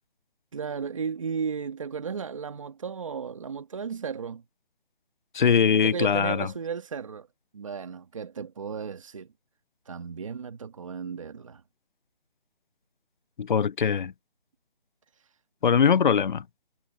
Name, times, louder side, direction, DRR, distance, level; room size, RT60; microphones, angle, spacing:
voice 1, 0.5-4.4 5.6-7.3 7.5-9.3 9.9-11.6, right 6 dB, 35° right, 1.4 m, -34 dB
voice 2, 5.3-6.5 13.4-14.1 15.6-16.4, left 7 dB, 55° left, 0.4 m, -22 dB
hypercardioid pair, 175°, 29 cm